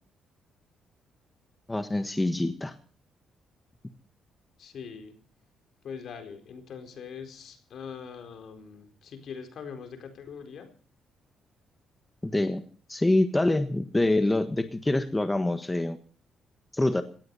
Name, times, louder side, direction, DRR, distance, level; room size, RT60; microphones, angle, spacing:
voice 1, 1.7-2.7 12.2-12.6 12.9-16.0 16.7-17.0, left 2 dB, 15° left, 9 dB, 1.4 m, -25 dB
voice 2, 4.6-5.2 5.8-10.7, left 6 dB, 65° left, 6 dB, 4.3 m, -42 dB
18.0 x 13.0 x 5.6 m, 0.42 s
cardioid pair, 90°, 0 cm